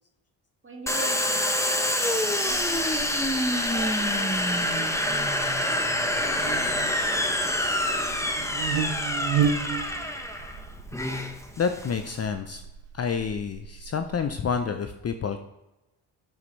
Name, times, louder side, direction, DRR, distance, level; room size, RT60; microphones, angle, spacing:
voice 1, 0.6-3.1 3.7-5.9, right 3 dB, 25° right, 1 dB, 2.1 m, -42 dB
Domestic sounds home sounds, 0.9-12.2, left 1 dB, 5° left, 1.0 m, -26 dB
Buzz, 2.5-14.6, right 7 dB, 75° right, 0.9 m, -35 dB
voice 2, 11.6-12.6 12.9-15.4, left 6 dB, 35° left, 8 dB, 0.6 m, -28 dB
8.8 x 7.5 x 3.2 m, 0.92 s
supercardioid pair, 60°, 45 cm